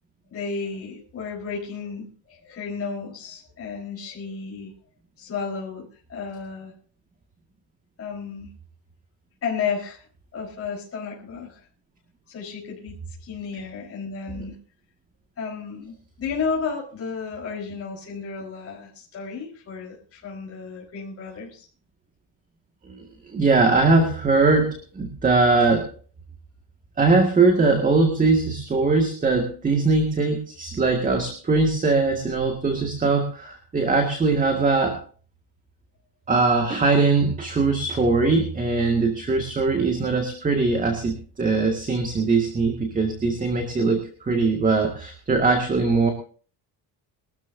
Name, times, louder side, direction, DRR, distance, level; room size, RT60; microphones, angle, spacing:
voice 1, 0.3-4.7 5.2-6.7 8.0-8.5 9.4-10.0 10.3-11.7 12.3-14.6 15.4-21.7, left 5 dB, 35° left, -3 dB, 4.6 m, -33 dB
voice 2, 23.3-25.9 27.0-35.0 36.3-46.1, right 3 dB, 20° right, 4 dB, 2.0 m, -21 dB
23.0 x 13.0 x 2.7 m, 0.41 s
cardioid pair, 160°, 40 cm